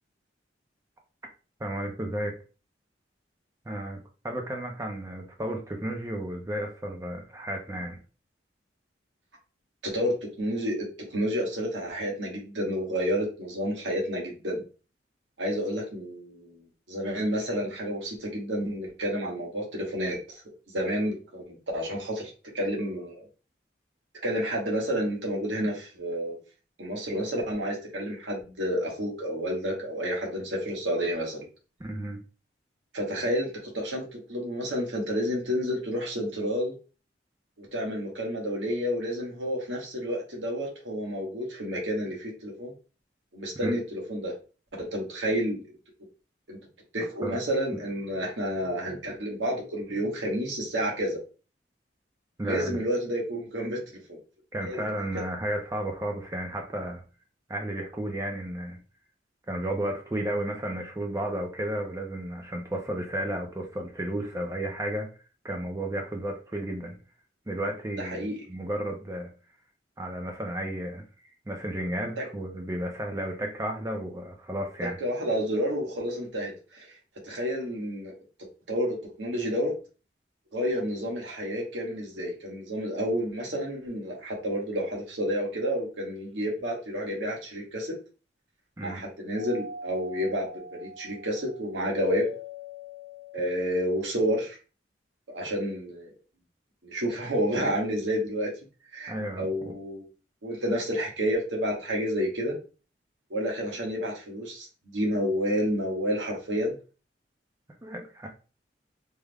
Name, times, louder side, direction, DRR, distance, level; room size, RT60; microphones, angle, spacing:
voice 1, 1.6-2.4 3.7-4.0 4.2-8.0 31.8-32.2 43.6-43.8 47.2-47.4 52.4-52.8 54.5-57.0 57.5-58.8 59.5-65.1 65.4-67.0 67.5-69.3 70.0-75.0 88.8-89.0 99.1-99.5 107.8-108.3, right 1 dB, 15° right, 2 dB, 0.4 m, -33 dB
voice 2, 9.8-10.9 11.1-14.6 15.4-16.6 16.9-20.4 20.7-23.2 24.2-26.4 26.8-31.5 32.9-36.7 37.6-42.7 43.3-44.4 44.8-45.6 46.5-46.6 46.9-51.2 52.4-53.8 54.6-54.9 68.0-68.4 72.2-72.3 75.0-76.9 77.2-78.1 78.7-79.7 80.5-88.0 88.8-92.3 93.3-94.6 95.3-96.1 96.8-98.5 98.9-100.1 100.4-102.5 103.3-106.7, equal, 90° right, -1 dB, 1.2 m, -30 dB
Doorbell, 89.3-94.1, left 2 dB, 30° left, 0.6 m, -43 dB
3.4 x 2.1 x 3.3 m, 0.35 s
head